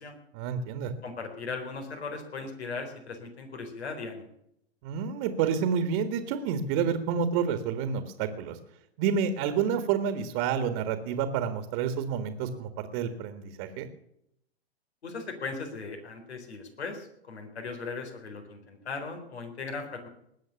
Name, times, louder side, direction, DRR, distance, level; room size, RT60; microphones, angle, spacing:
voice 1, 0.3-0.9 4.8-8.6 9.0-13.9, right 7 dB, 45° right, 9 dB, 1.8 m, -29 dB
voice 2, 1.0-4.3 15.0-20.1, left 4 dB, 80° left, 5 dB, 4.1 m, -38 dB
20.0 x 7.8 x 7.1 m, 0.76 s
hypercardioid pair, 110°, 32 cm